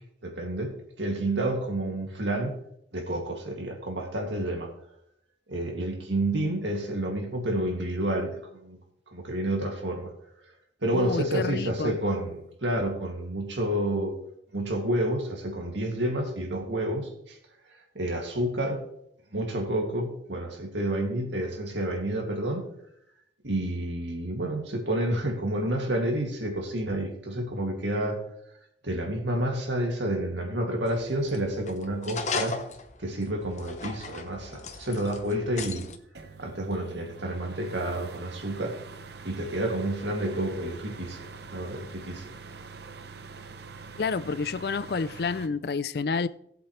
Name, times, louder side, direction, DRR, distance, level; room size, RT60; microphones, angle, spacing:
voice 1, 0.2-0.7 1.0-2.6 2.9-4.7 5.5-8.8 9.1-10.1 10.8-14.2 14.5-17.4 17.9-18.9 19.3-22.6 23.4-28.2 28.8-32.6 33.0-35.9 36.4-38.7 39.2-42.3, right 1 dB, 85° right, 2.4 m, -29 dB
voice 2, 10.9-12.0 44.0-46.3, left 4 dB, 60° left, 0.4 m, -29 dB
sound 1, 30.9-36.0, left 4 dB, 40° left, 0.9 m, -37 dB
sound 2, 36.1-45.5, right 4 dB, 65° right, 0.8 m, -44 dB
17.5 x 7.8 x 3.2 m
head